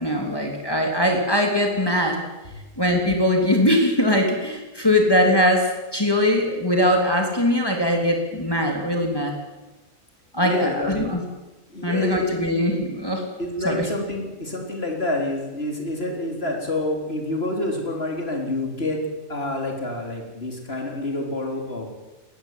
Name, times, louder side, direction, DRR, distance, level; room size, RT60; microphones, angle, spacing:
voice 1, 0.0-2.2 2.8-9.3 10.3-11.2 11.8-13.2 13.6-13.9, left 1 dB, 15° left, 2 dB, 3.1 m, -21 dB
voice 2, 10.4-11.1 11.7-12.4 13.4-19.0 19.3-21.9, left 1 dB, 50° left, 2 dB, 4.2 m, -28 dB
20.5 x 18.5 x 9.3 m, 1.1 s
omnidirectional pair, 1.4 m